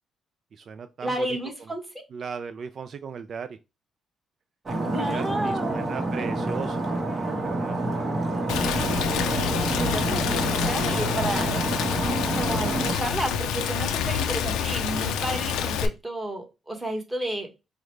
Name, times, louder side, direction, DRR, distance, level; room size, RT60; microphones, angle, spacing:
voice 1, 0.5-1.3 2.1-3.6 4.7-7.8 8.5-8.8 12.6-12.7, right 6 dB, 55° right, 0.3 m, -37 dB
voice 2, 1.0-2.0 4.7-5.9 9.1-11.6 12.3-17.5, right 1 dB, 10° right, 1.3 m, -32 dB
Stream, 4.7-12.9, right 2 dB, 35° right, 1.1 m, -28 dB
Rain, 8.5-15.9, left 8 dB, 90° left, 0.4 m, -27 dB
4.7 x 2.1 x 3.1 m
cardioid pair, 90°, 0 cm